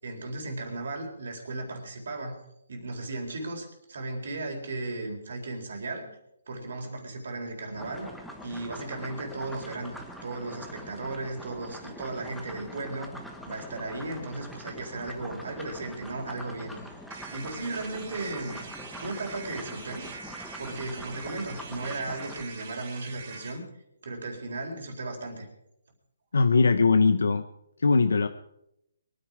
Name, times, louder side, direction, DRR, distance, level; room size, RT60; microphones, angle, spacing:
voice 1, 0.0-2.4 2.7-6.1 6.5-8.1 8.4-9.9 10.2-13.1 13.4-16.8 17.3-18.6 19.0-20.1 20.6-23.6 24.0-25.5, right 2 dB, 65° right, 3 dB, 4.1 m, -35 dB
sound 1, 7.8-22.4, equal, ahead, 1.2 m, -44 dB
sound 2, 17.1-23.6, right 5 dB, 35° right, 2.2 m, -44 dB
voice 2, 26.3-27.4 27.8-28.3, left 4 dB, 85° left, 10 dB, 0.8 m, -20 dB
23.5 x 9.9 x 4.9 m, 0.81 s
hypercardioid pair, 165°, 0 cm